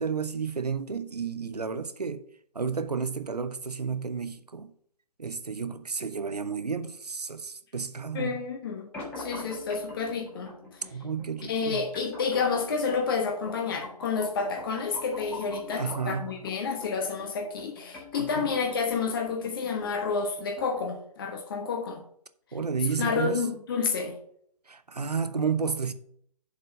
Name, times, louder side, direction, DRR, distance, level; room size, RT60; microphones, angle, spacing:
voice 1, 0.0-2.3 2.5-4.7 5.2-8.5 10.9-11.9 15.7-16.5 18.2-18.5 22.5-23.4 24.7-25.9, right 5 dB, 75° right, 0.8 m, -32 dB
voice 2, 8.1-8.9 9.2-10.5 11.4-22.0 23.0-24.2, left 5 dB, 35° left, 1.1 m, -30 dB
sound 1, 8.9-20.9, left 2 dB, 10° left, 1.7 m, -44 dB
7.1 x 4.4 x 6.4 m
figure-of-eight pair, 140°, 21 cm